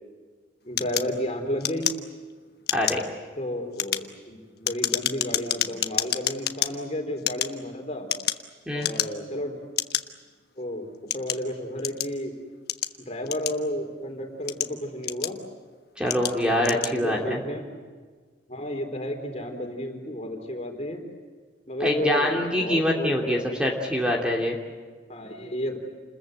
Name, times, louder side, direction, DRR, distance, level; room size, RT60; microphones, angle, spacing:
voice 1, 0.6-1.9 3.4-8.1 8.7-9.6 10.6-12.3 13.0-15.4 16.4-17.6 18.5-21.0 21.7-23.6 25.1-25.8, equal, 35° left, 4 dB, 4.0 m, -32 dB
sound 1, 0.8-2.3 2.6-3.1 3.6-6.7 7.2-8.5 8.8-9.3 9.8-10.0 10.7-12.2 12.7-13.9 14.3-15.5 16.1-16.4 16.6-17.0, left 11 dB, 55° left, 1.3 m, -28 dB
voice 2, 2.7-3.0 8.7-8.9 16.0-17.4 21.8-24.6, left 1 dB, 5° right, -1 dB, 2.8 m, -24 dB
29.5 x 21.5 x 8.1 m, 1.5 s
head